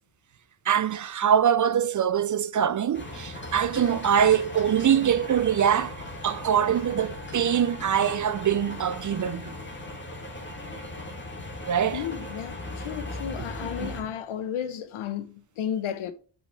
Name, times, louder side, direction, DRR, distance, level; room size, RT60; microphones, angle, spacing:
voice 1, 0.7-6.0 6.2-9.5 11.7-12.0 13.8-13.9, right 8 dB, 40° right, 0.5 m, -23 dB
sound 1, 2.9-14.0, left 1 dB, 25° left, 1.8 m, -38 dB
voice 2, 11.9-16.1, left 9 dB, 85° left, 0.8 m, -33 dB
5.5 x 4.7 x 4.4 m
cardioid pair, 60°, 48 cm